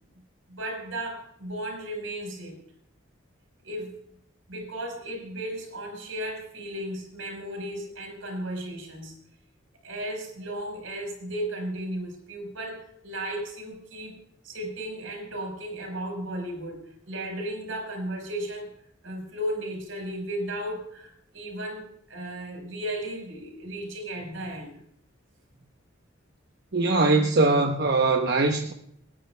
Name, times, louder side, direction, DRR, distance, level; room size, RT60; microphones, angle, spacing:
voice 1, 0.5-2.6 3.6-4.0 4.5-9.2 9.8-14.2 14.4-18.7 19.0-24.8, right 1 dB, 85° right, 2 dB, 4.9 m, -35 dB
voice 2, 26.7-28.7, right 3 dB, 55° right, 3 dB, 0.9 m, -21 dB
28.5 x 9.7 x 2.2 m, 0.70 s
head